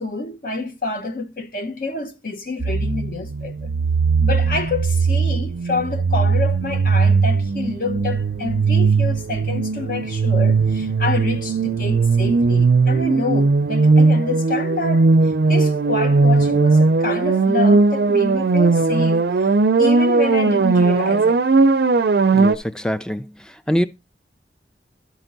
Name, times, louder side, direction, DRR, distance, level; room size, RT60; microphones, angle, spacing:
voice 1, 0.0-3.7 4.2-15.1 15.5-19.5 19.8-21.4, left 3 dB, 50° left, 0.9 m, -28 dB
sound 1, 2.6-22.5, right 4 dB, 65° right, 0.4 m, -18 dB
voice 2, 22.3-23.9, equal, 5° left, 0.4 m, -24 dB
12.0 x 4.5 x 3.9 m
head